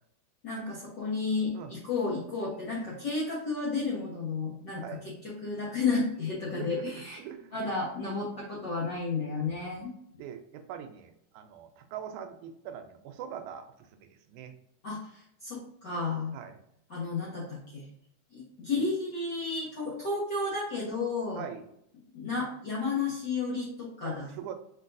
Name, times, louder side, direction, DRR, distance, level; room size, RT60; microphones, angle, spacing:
voice 1, 0.4-7.2 7.5-9.9 14.8-16.4 16.9-17.8 18.3-21.4 22.1-24.3, left 4 dB, 60° left, -7 dB, 1.1 m, -32 dB
voice 2, 4.7-5.0 6.6-7.7 9.6-9.7 10.2-14.5 16.3-16.6 21.4-21.7 24.0-24.5, right 8 dB, 80° right, 7 dB, 2.0 m, -43 dB
4.6 x 4.4 x 2.5 m, 0.73 s
omnidirectional pair, 3.5 m